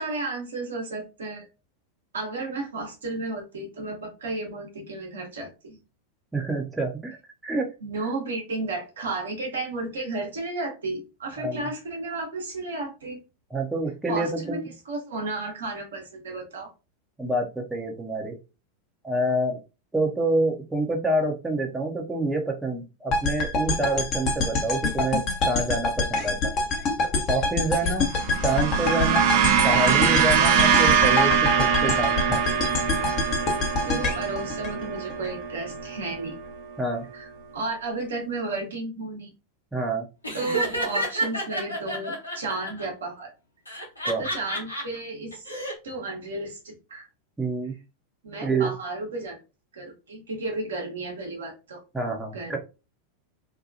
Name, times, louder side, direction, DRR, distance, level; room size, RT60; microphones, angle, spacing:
voice 1, 0.0-1.5 2.1-5.8 7.8-13.2 14.1-14.6 14.8-16.7 27.8-27.9 33.8-36.3 37.1-37.3 37.5-39.3 40.3-43.3 44.2-45.5 45.8-47.1 48.2-49.4 49.7-51.8 52.3-52.6, right 2 dB, 75° right, 0 dB, 0.9 m, -33 dB
voice 2, 6.3-7.2 7.4-7.7 11.4-11.7 13.5-14.7 17.2-18.4 19.0-19.6 19.9-26.5 27.3-28.0 28.4-29.3 29.6-32.4 36.8-37.0 39.7-40.0 44.0-44.2 47.4-47.8 48.4-48.7 51.9-52.6, right 2 dB, 10° right, 2 dB, 0.7 m, -27 dB
sound 1, 23.1-35.3, left 3 dB, 40° left, 0.9 m, -26 dB
sound 2, 28.1-36.6, right 7 dB, 55° right, 0.4 m, -23 dB
Laughter, 40.2-42.8 43.7-44.8 45.3-45.7, right 1 dB, 90° left, 1.0 m, -29 dB
2.8 x 2.2 x 2.6 m, 0.29 s
figure-of-eight pair, 90°, 0 cm